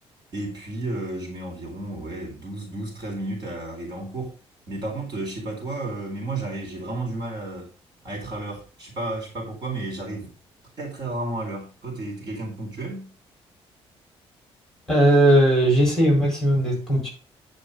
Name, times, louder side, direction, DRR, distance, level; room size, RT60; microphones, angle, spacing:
voice 1, 0.3-4.3 4.7-7.7 8.0-10.3 10.8-13.1, right 2 dB, 45° right, 4.2 m, -32 dB
voice 2, 14.9-17.1, right 1 dB, 5° left, 4.4 m, -18 dB
10.5 x 5.4 x 5.0 m
cardioid pair, 175°, 11 cm